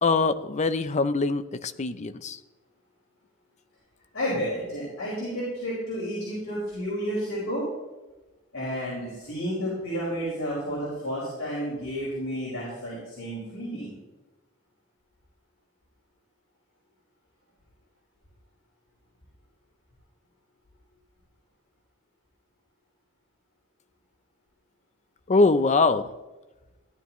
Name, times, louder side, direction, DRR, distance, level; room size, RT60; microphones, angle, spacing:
voice 1, 0.0-2.4 25.3-26.1, left 3 dB, 35° left, 12 dB, 0.6 m, -23 dB
voice 2, 4.1-7.7 8.5-13.9, equal, 75° left, -8 dB, 5.0 m, -31 dB
17.0 x 11.5 x 3.1 m, 1.1 s
head